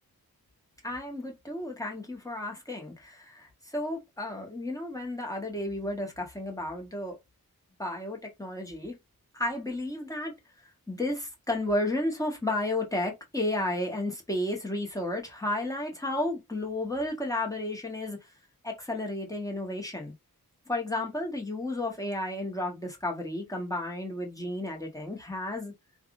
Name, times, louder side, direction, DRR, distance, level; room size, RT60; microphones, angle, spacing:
voice 1, 0.8-7.2 7.8-9.0 9.3-10.3 10.9-18.2 18.6-20.1 20.7-25.7, left 1 dB, 10° left, 1.1 m, -32 dB
3.4 x 2.4 x 2.4 m
wide cardioid pair, 55°, 37 cm